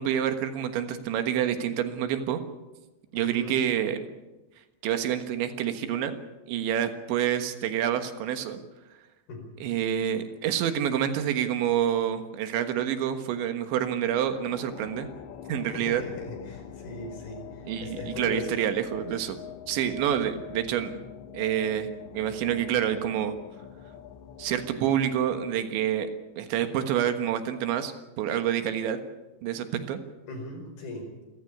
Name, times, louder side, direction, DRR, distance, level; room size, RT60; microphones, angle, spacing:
voice 1, 0.0-2.4 3.1-4.1 4.8-6.2 6.5-8.6 9.6-15.1 15.5-16.0 17.7-19.4 19.7-21.0 21.3-21.9 22.1-23.4 24.4-26.1 26.4-29.0 29.4-30.0, right 10 dB, 80° right, 8 dB, 3.7 m, -27 dB
voice 2, 3.1-3.6 9.3-9.5 15.7-18.6 30.3-31.1, left 2 dB, 55° left, 4 dB, 6.6 m, -38 dB
sound 1, 14.0-26.6, left 8 dB, 75° left, 3.4 m, -45 dB
28.0 x 15.0 x 8.4 m, 1.1 s
omnidirectional pair, 5.2 m